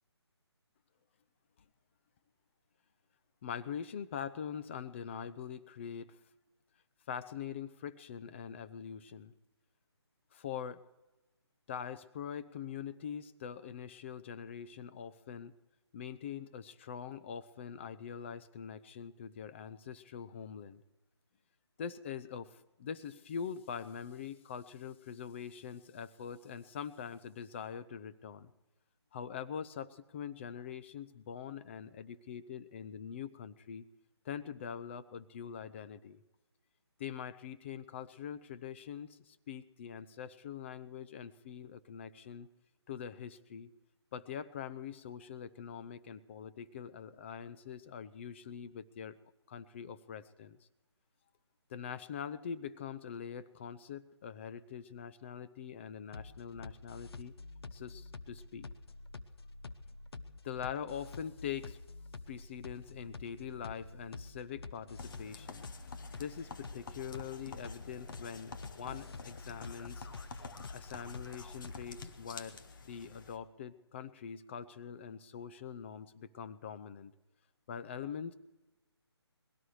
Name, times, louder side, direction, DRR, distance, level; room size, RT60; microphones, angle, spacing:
voice 1, 3.4-6.1 7.1-9.3 10.4-10.8 11.7-15.5 15.9-20.8 21.8-22.5 22.8-28.5 29.1-33.8 34.3-36.2 37.0-39.1 39.5-42.5 42.9-43.7 44.1-49.1 49.5-50.5 51.7-57.3 57.7-58.7 60.4-61.8 62.3-65.7 66.2-70.1 70.7-72.6 72.9-77.1 77.7-78.3, left 8 dB, 25° left, 12 dB, 0.6 m, -43 dB
sound 1, 56.1-72.1, left 3 dB, 60° left, 1.0 m, -48 dB
sound 2, 65.0-73.4, left 4 dB, 45° left, 1.4 m, -49 dB
21.5 x 17.0 x 3.2 m, 1.1 s
figure-of-eight pair, 155°, 14 cm